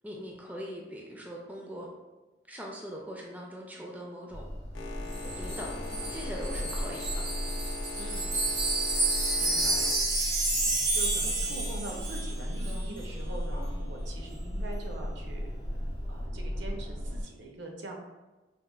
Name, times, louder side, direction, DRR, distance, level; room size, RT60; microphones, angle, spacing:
voice 1, 0.0-1.9 2.5-4.5 5.4-5.7 6.1-7.3, equal, 10° right, -2 dB, 0.3 m, -41 dB
sound 1, 4.3-17.2, equal, 35° left, 0.6 m, -36 dB
Boat Water vehicle, 4.7-11.1, left 3 dB, 85° left, 0.4 m, -43 dB
Wind chime, 5.1-12.4 12.6-12.8, right 2 dB, 90° right, 1.0 m, -30 dB
voice 2, 7.9-8.3 9.4-10.0 10.9-15.5 16.1-18.0, right 2 dB, 70° right, 1 dB, 0.5 m, -43 dB
4.1 x 2.1 x 2.2 m, 1.2 s
head